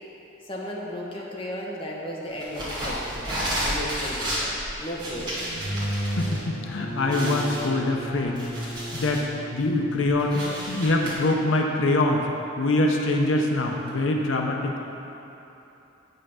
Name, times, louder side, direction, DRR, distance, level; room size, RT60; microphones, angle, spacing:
voice 1, 0.4-3.2 3.6-4.5 4.8-5.4, equal, 30° left, -3 dB, 1.0 m, -34 dB
sound 1, 2.4-6.4 6.7-6.8 7.1-9.3 9.7-11.1, equal, 25° right, 2.0 m, -31 dB
sound 2, 5.5-11.0, equal, 65° left, 1.7 m, -34 dB
voice 2, 6.2-8.5 8.9-9.3 9.5-12.2 12.6-14.8, left 2 dB, 85° left, 2 dB, 0.7 m, -24 dB
7.8 x 5.5 x 5.6 m, 3.0 s
head